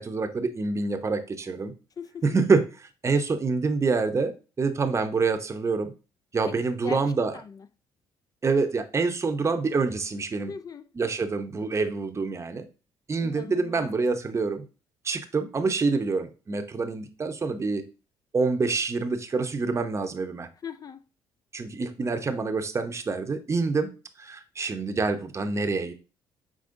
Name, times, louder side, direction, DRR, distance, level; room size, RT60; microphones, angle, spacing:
voice 1, 0.0-1.7 2.2-5.9 6.3-7.4 8.4-10.5 11.0-12.7 13.1-14.6 15.0-17.8 18.3-20.5 21.5-23.9 24.2-25.9, right 4 dB, 30° right, 0.7 m, -26 dB
voice 2, 7.3-7.7 10.5-10.9 13.2-13.9 20.6-21.0, left 6 dB, 40° left, 0.4 m, -39 dB
5.0 x 3.6 x 2.5 m
supercardioid pair, 70°, 10 cm